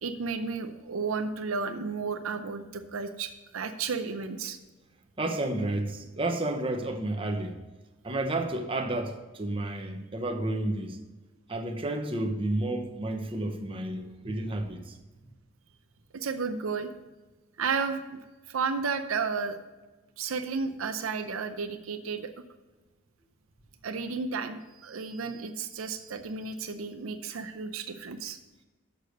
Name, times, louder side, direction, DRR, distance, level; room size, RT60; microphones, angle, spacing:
voice 1, 0.0-4.6 16.1-16.9 17.6-19.6 20.2-22.3 23.8-28.4, right 5 dB, 90° right, 0.6 m, -33 dB
voice 2, 5.2-7.6 8.0-11.0 11.5-14.9, right 2 dB, 25° right, 0.9 m, -31 dB
6.7 x 6.6 x 6.4 m
head